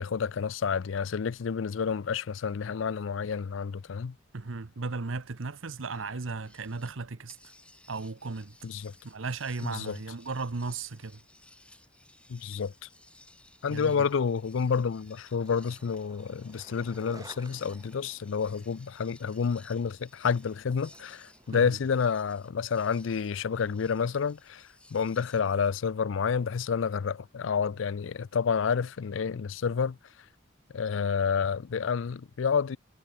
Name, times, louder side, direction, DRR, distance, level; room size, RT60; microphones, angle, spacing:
voice 1, 0.0-4.1 8.6-8.9 9.6-10.0 12.3-12.7 13.6-30.0 30.7-32.8, left 6 dB, 70° left, 0.4 m, -29 dB
voice 2, 4.3-7.4 7.9-8.6 9.0-11.2 13.7-14.1 21.5-21.8, right 3 dB, 80° right, 0.9 m, -35 dB
sound 1, 6.4-7.0 7.3-25.7, left 2 dB, 5° left, 2.0 m, -58 dB
Skateboard, 15.0-23.3, right 2 dB, 20° right, 6.7 m, -56 dB
head